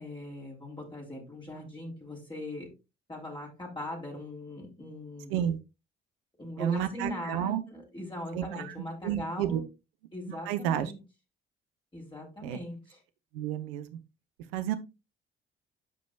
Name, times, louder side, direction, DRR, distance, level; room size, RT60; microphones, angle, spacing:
voice 1, 0.0-2.7 3.1-5.4 6.4-9.7 10.1-11.0 11.9-13.0, left 1 dB, 15° left, -3 dB, 3.4 m, -40 dB
voice 2, 6.6-7.6 8.3-8.7 9.0-9.6 10.3-10.9 12.4-12.6 13.3-13.9 14.5-14.8, right 10 dB, 75° right, 10 dB, 0.8 m, -31 dB
13.0 x 5.2 x 2.3 m, 0.26 s
figure-of-eight pair, 45°, 29 cm